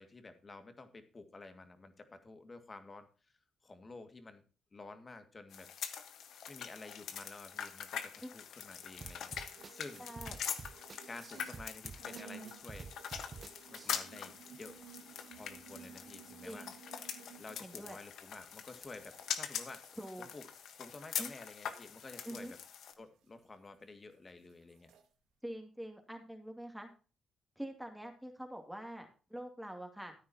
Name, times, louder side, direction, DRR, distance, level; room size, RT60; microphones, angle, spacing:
voice 1, 0.0-3.1 3.6-4.4 4.7-5.7 6.5-9.3 9.7-10.0 11.1-12.9 13.7-14.8 15.3-16.7 17.4-20.5 20.8-22.6 23.0-24.9, left 3 dB, 35° left, 8 dB, 2.0 m, -51 dB
sound 1, 5.5-22.9, left 8 dB, 75° left, 1.2 m, -44 dB
sound 2, 8.7-11.6 11.9-23.8 24.1-25.1, right 7 dB, 90° right, 1.8 m, -58 dB
sound 3, 9.0-14.1, right 5 dB, 45° right, 0.6 m, -49 dB
voice 2, 10.0-10.4 16.4-16.7 17.6-18.0 20.0-20.3 21.2-21.3 22.2-22.5 25.4-26.9 27.6-30.1, right 1 dB, 5° right, 4 dB, 2.4 m, -45 dB
14.5 x 9.5 x 2.9 m, 0.36 s
supercardioid pair, 65°, 0 cm